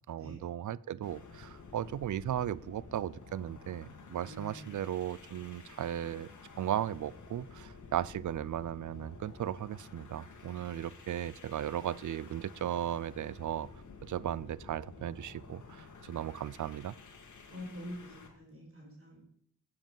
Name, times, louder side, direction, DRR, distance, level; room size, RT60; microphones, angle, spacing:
voice 1, 0.1-6.3 6.6-13.7 14.0-16.9, right 11 dB, 70° right, 0.5 m, -36 dB
sound 1, 1.0-18.4, left 4 dB, 70° left, 2.0 m, -52 dB
voice 2, 4.2-4.7 17.5-19.2, left 1 dB, 45° right, 5.0 m, -46 dB
12.5 x 7.8 x 5.4 m
cardioid pair, 75°, 31 cm